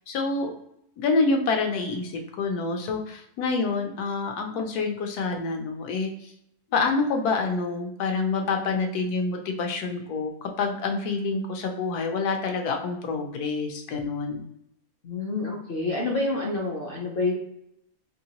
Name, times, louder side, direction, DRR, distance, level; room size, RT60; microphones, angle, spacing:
voice 1, 0.1-0.5 1.0-6.3 6.7-14.4, left 4 dB, 85° left, 3 dB, 1.2 m, -27 dB
voice 2, 15.0-17.3, left 3 dB, 60° left, -2 dB, 0.6 m, -28 dB
3.0 x 2.7 x 2.9 m, 0.77 s
omnidirectional pair, 1.6 m